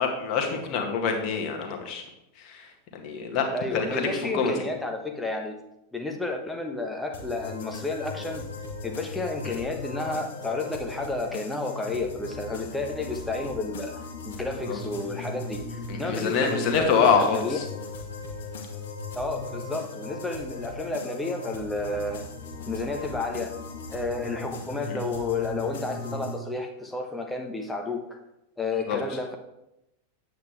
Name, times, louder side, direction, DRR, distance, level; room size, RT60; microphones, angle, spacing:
voice 1, 0.0-2.0 2.4-3.5 3.7-4.5 9.4-9.6 14.7-14.8 15.9-17.6 24.9-25.0 28.9-29.0, left 5 dB, 40° left, 2 dB, 1.7 m, -26 dB
voice 2, 3.5-5.6 5.9-8.5 8.8-17.6 19.1-22.2 22.7-23.5 23.9-28.2 28.6-29.4, left 3 dB, 5° left, 3 dB, 1.2 m, -31 dB
sound 1, 7.1-26.3, left 3 dB, 55° left, 1.6 m, -38 dB
8.7 x 8.1 x 3.4 m, 0.87 s
figure-of-eight pair, 90°, 0 cm